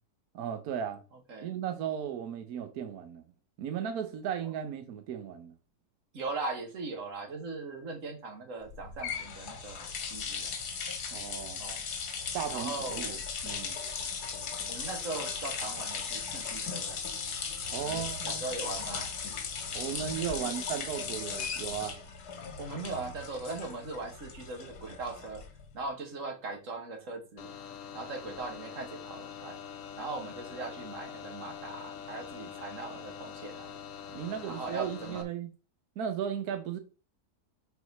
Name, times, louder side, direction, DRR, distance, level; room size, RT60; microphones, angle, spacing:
voice 1, 0.3-1.0 1.4-3.2 3.6-5.5 11.1-11.7 12.3-13.2 13.4-13.8 17.7-18.4 19.7-22.0 34.1-35.5 36.0-36.8, right 9 dB, 75° right, 1.3 m, -36 dB
voice 2, 6.1-10.5 11.6-11.9 12.5-13.2 14.7-17.0 17.8-19.1 20.4-20.5 22.6-25.4 25.7-27.5 27.9-29.6 30.0-33.8 34.5-35.2, right 3 dB, 55° right, 1.7 m, -40 dB
sound 1, 8.7-25.7, left 5 dB, 85° left, 1.6 m, -37 dB
sound 2, 27.4-35.2, left 8 dB, 60° left, 1.2 m, -44 dB
4.7 x 4.1 x 5.3 m
omnidirectional pair, 1.6 m